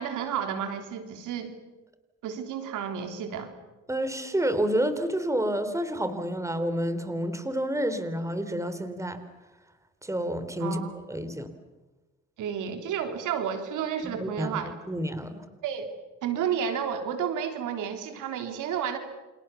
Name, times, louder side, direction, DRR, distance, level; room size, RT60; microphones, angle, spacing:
voice 1, 0.0-1.5 2.2-3.5 10.6-10.9 12.4-14.7 15.6-15.9 16.2-19.0, right 8 dB, 85° right, 7 dB, 3.6 m, -31 dB
voice 2, 3.9-9.2 10.0-11.5 14.0-14.6 14.9-15.4, right 1 dB, 10° right, 10 dB, 3.5 m, -29 dB
29.5 x 27.5 x 7.1 m, 1.1 s
cardioid pair, 90°, 30 cm